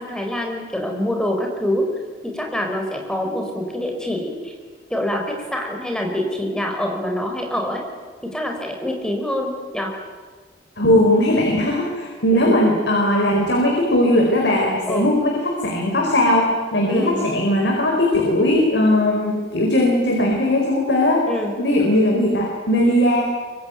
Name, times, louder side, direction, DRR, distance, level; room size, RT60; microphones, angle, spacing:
voice 1, 0.0-1.9 2.2-4.5 4.9-7.8 8.3-9.9 12.3-12.5 14.9-15.1 16.9-17.2 21.3-21.5, left 1 dB, 5° left, 1 dB, 4.7 m, -25 dB
voice 2, 10.8-21.3 21.6-23.2, left 1 dB, 75° left, 0 dB, 4.8 m, -18 dB
24.0 x 24.0 x 9.3 m, 1.5 s
head